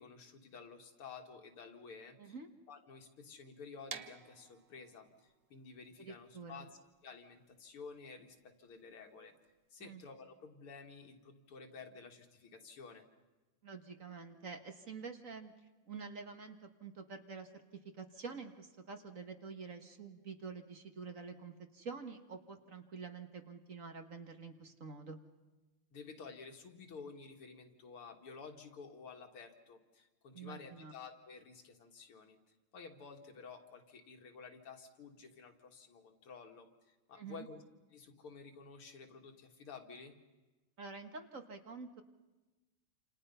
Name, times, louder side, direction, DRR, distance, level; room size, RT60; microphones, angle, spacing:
voice 1, 0.0-2.4 2.7-6.7 7.0-9.3 9.7-13.1 25.9-32.4 32.7-37.6 37.9-40.2, left 5 dB, 90° left, 4 dB, 2.9 m, -52 dB
sound 1, 3.9-9.7, right 8 dB, 60° right, 1.5 m, -53 dB
voice 2, 6.0-6.7 9.8-10.0 13.6-15.5 15.9-17.5 17.9-25.2 30.3-30.9 37.1-37.5 40.8-42.0, right 5 dB, 40° right, 6 dB, 1.7 m, -48 dB
28.0 x 27.5 x 5.6 m, 1.2 s
omnidirectional pair, 2.3 m